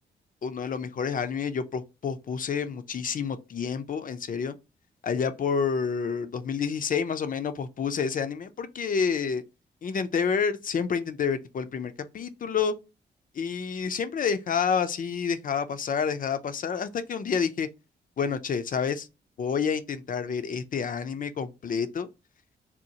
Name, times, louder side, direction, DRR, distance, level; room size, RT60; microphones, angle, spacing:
voice 1, 0.4-4.6 5.0-9.4 9.8-12.7 13.3-17.7 18.2-19.1 19.4-22.1, left 6 dB, 45° left, 0.4 m, -29 dB
2.8 x 2.0 x 2.6 m
cardioid pair, 55°, 19 cm